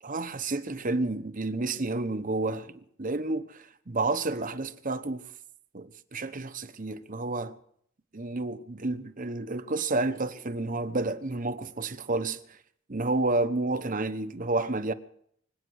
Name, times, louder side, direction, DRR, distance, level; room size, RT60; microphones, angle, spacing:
voice 1, 0.0-5.3 5.7-7.5 8.1-12.6 12.9-14.9, right 2 dB, 40° right, 0.9 m, -30 dB
24.5 x 8.9 x 6.4 m
head